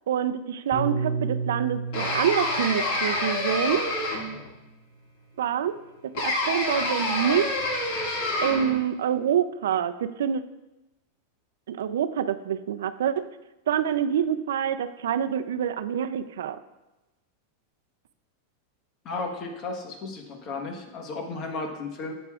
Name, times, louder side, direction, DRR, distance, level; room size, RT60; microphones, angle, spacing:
voice 1, 0.1-3.9 5.4-5.8 6.0-7.5 8.4-10.4 11.7-13.3 13.7-16.6, right 9 dB, 85° right, 12 dB, 0.4 m, -26 dB
Piano, 0.7-5.2, right 4 dB, ahead, 2.9 m, -33 dB
sound 1, 1.9-4.5 6.1-8.8, left 2 dB, 60° left, 1.9 m, -27 dB
voice 2, 19.0-22.1, left 3 dB, 35° left, 4 dB, 1.2 m, -34 dB
10.5 x 7.8 x 2.4 m, 1.0 s
supercardioid pair, 140°, 0 cm